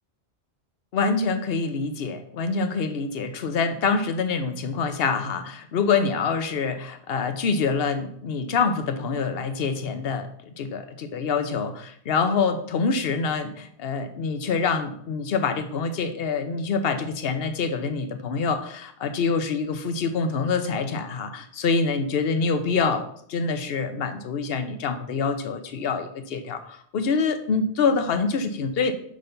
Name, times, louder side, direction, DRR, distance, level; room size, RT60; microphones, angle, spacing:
voice 1, 0.9-28.9, left 5 dB, 65° left, 8 dB, 1.0 m, -26 dB
6.3 x 5.6 x 5.2 m, 0.66 s
omnidirectional pair, 1.1 m